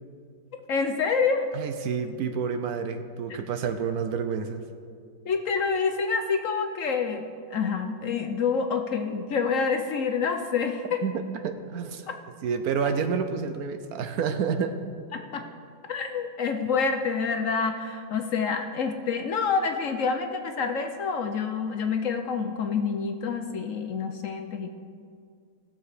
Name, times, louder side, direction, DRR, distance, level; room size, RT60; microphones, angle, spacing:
voice 1, 0.7-1.4 5.3-11.0 15.1-15.4 15.9-24.8, left 5 dB, 60° left, 5 dB, 0.9 m, -27 dB
voice 2, 1.5-4.6 11.0-12.1 12.4-14.7, right 6 dB, 70° right, 8 dB, 1.1 m, -29 dB
17.5 x 7.2 x 4.9 m, 2.2 s
omnidirectional pair, 1.8 m